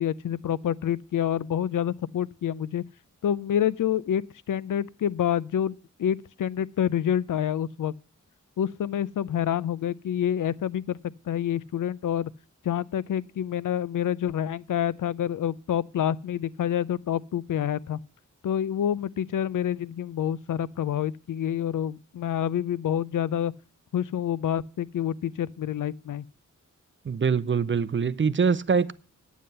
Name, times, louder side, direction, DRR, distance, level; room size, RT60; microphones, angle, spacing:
voice 1, 0.0-2.8 3.2-7.9 8.6-11.0 11.3-12.3 12.6-18.0 18.4-23.5 23.9-26.2, left 10 dB, 85° left, 0.5 m, -27 dB
voice 2, 27.1-28.9, right 5 dB, 40° right, 0.5 m, -24 dB
9.4 x 9.3 x 5.4 m
wide cardioid pair, 130°, 31 cm